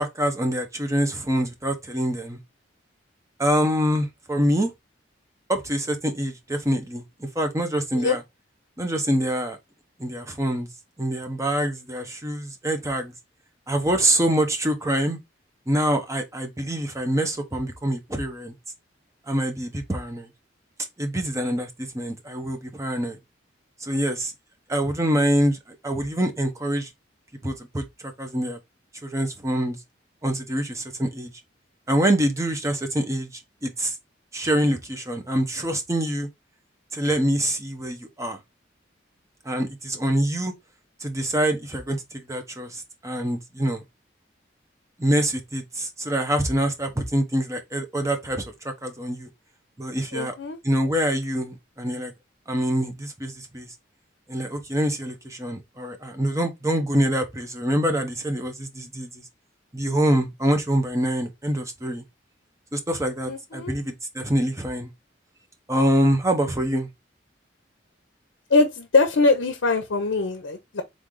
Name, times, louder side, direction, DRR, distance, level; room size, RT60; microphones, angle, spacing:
voice 1, 0.0-2.4 3.4-4.7 5.5-8.2 8.8-9.6 10.0-10.7 11.0-13.1 13.7-15.2 15.7-18.5 19.3-20.3 21.0-23.2 23.8-24.3 24.7-26.9 27.4-28.6 29.0-29.8 30.2-31.3 31.9-34.0 34.3-36.3 36.9-38.4 39.4-40.5 41.0-43.8 45.0-49.3 49.8-50.3 50.6-52.1 52.5-53.7 54.3-59.2 59.7-62.0 62.7-64.9 65.7-66.9, right 1 dB, 15° right, 0.8 m, -25 dB
voice 2, 50.1-50.6 63.3-63.8 68.5-70.8, left 3 dB, 80° left, 0.6 m, -22 dB
3.7 x 3.3 x 3.6 m
head